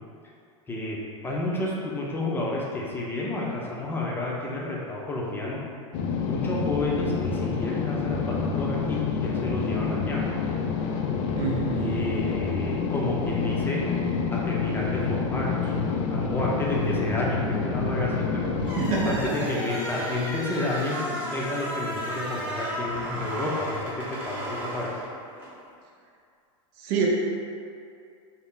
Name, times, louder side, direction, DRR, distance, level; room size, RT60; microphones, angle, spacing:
voice 1, 0.7-1.0 1.2-5.6 6.3-10.2 11.7-13.8 14.3-15.7 16.1-18.8 19.1-23.8 24.1-24.9, left 2 dB, 10° left, -4 dB, 0.5 m, -30 dB
sound 1, 5.9-19.3, left 5 dB, 60° left, 0.4 m, -28 dB
voice 2, 11.4-12.1 18.8-19.5 26.8-27.1, right 5 dB, 55° right, -2 dB, 0.5 m, -27 dB
sound 2, 18.6-25.6, equal, 10° right, 0.9 m, -34 dB
2.6 x 2.0 x 3.6 m, 2.4 s
supercardioid pair, 115°, 17 cm